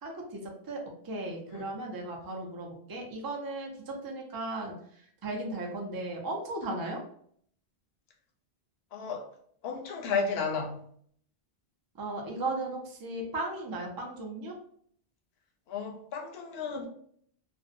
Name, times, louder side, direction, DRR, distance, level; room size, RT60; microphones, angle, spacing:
voice 1, 0.0-4.7 5.2-7.0 12.0-14.6, right 2 dB, 40° right, 0 dB, 0.3 m, -36 dB
voice 2, 8.9-9.3 9.6-10.8 15.7-16.9, left 5 dB, 70° left, 2 dB, 0.8 m, -33 dB
2.5 x 2.0 x 2.5 m, 0.62 s
omnidirectional pair, 1.1 m